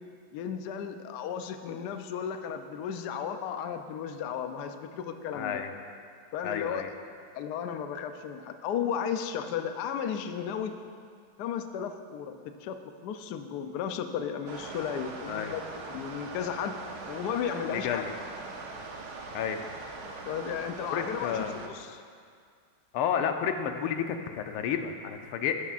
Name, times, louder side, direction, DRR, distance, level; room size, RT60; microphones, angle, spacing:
voice 1, 0.3-5.6 6.3-6.9 7.4-10.8 11.4-16.8 17.1-18.1 20.2-22.0, left 8 dB, 70° left, 8 dB, 1.0 m, -34 dB
voice 2, 5.3-5.7 6.4-6.9 15.3-15.5 17.7-18.1 19.3-19.6 20.9-21.7 22.9-25.6, left 8 dB, 90° left, 6 dB, 1.6 m, -31 dB
sound 1, 14.5-21.7, right 3 dB, 60° right, 1.2 m, -41 dB
12.5 x 12.0 x 2.5 m, 2.1 s
omnidirectional pair, 2.3 m